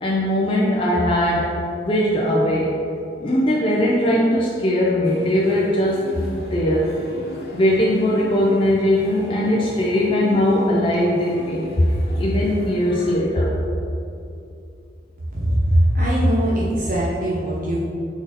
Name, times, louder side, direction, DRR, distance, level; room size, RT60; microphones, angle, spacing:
voice 1, 0.0-2.7 3.2-6.9 7.5-11.9 12.2-13.6, left 1 dB, 30° left, -4 dB, 0.5 m, -20 dB
sound 1, 5.0-13.1, left 1 dB, 65° left, 1.1 m, -39 dB
Singing, 8.9-11.0, equal, 65° right, 1.2 m, -39 dB
voice 2, 15.3-17.8, equal, 50° right, -7 dB, 0.8 m, -20 dB
6.0 x 4.0 x 4.1 m, 2.7 s
head